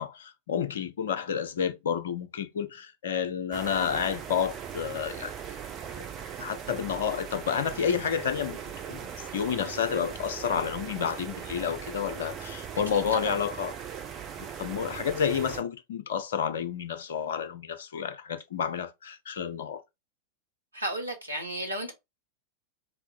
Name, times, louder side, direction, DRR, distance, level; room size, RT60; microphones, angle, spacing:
voice 1, 0.0-5.3 6.4-8.6 8.9-13.7 14.4-19.8, left 7 dB, 60° left, 0.6 m, -30 dB
sound 1, 3.5-15.6, right 8 dB, 30° right, 0.8 m, -39 dB
voice 2, 12.9-13.4 20.7-21.9, right 1 dB, 85° right, 1.2 m, -33 dB
4.5 x 3.4 x 2.4 m
figure-of-eight pair, 90°, 0 cm